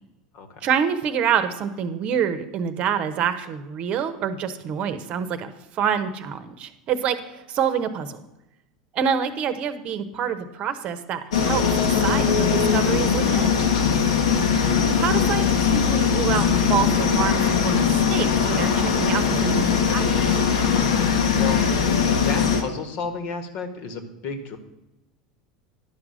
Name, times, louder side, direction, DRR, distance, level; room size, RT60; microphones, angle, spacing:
voice 1, 0.6-8.2 8.9-13.5 15.0-20.4, right 7 dB, 40° right, 10 dB, 0.9 m, -27 dB
sound 1, 11.3-22.6, left 6 dB, 70° left, 1.3 m, -20 dB
voice 2, 21.4-21.8 22.1-24.6, left 4 dB, 50° left, 7 dB, 1.5 m, -32 dB
11.0 x 6.1 x 6.4 m, 0.93 s
figure-of-eight pair, 80°, 3 cm